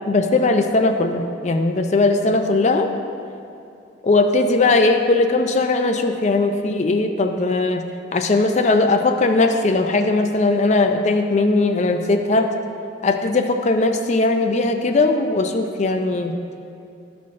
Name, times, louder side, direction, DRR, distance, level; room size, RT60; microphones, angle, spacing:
voice 1, 0.1-2.9 4.0-7.8 8.1-12.5 13.0-16.4, left 3 dB, 35° left, 6 dB, 0.4 m, -19 dB
13.0 x 5.7 x 2.5 m, 2.6 s
head